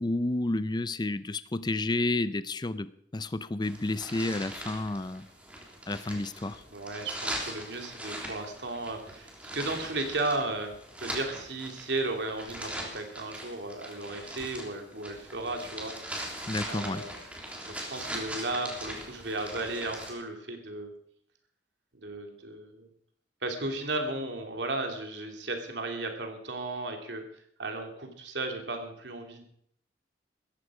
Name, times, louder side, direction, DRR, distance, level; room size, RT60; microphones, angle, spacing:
voice 1, 0.0-5.3 5.9-6.6 16.5-17.0, left 2 dB, 25° left, 15 dB, 0.5 m, -31 dB
sound 1, 3.6-20.1, right 1 dB, 10° right, 3.5 m, -41 dB
voice 2, 6.7-16.2 16.7-17.1 17.6-20.9 21.9-22.9 23.4-27.3 27.6-29.4, right 2 dB, 85° right, 4 dB, 3.0 m, -35 dB
16.5 x 14.5 x 5.0 m, 0.69 s
head